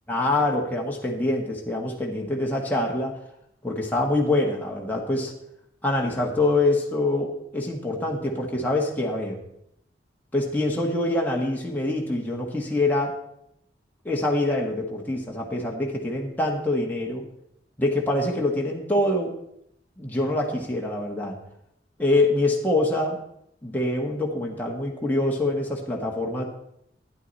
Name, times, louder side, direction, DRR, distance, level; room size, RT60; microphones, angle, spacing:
voice 1, 0.1-3.2 3.6-5.3 5.8-9.4 10.3-13.1 14.0-17.2 17.8-19.3 20.0-21.4 22.0-23.2 23.6-26.4, left 2 dB, 10° left, -2 dB, 1.5 m, -25 dB
12.5 x 9.6 x 4.1 m, 0.76 s
head